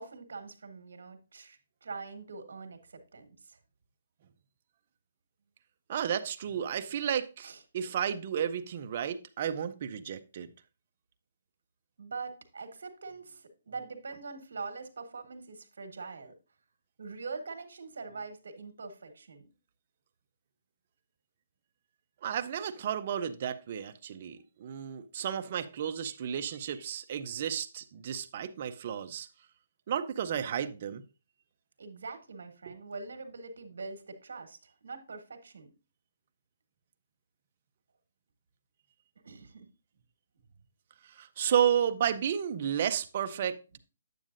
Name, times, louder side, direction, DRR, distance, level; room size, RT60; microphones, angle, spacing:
voice 1, 0.0-3.6 6.4-6.7 7.4-7.6 12.0-16.3 17.0-19.5 31.8-35.7 39.2-39.7 43.7-43.8, right 4 dB, 65° right, 1.4 m, -43 dB
voice 2, 5.9-10.5 22.2-29.3 29.9-31.0 32.7-32.8 41.0-43.6, right 9 dB, 30° right, 0.4 m, -32 dB
9.0 x 7.2 x 2.5 m
hypercardioid pair, 180°, 0 cm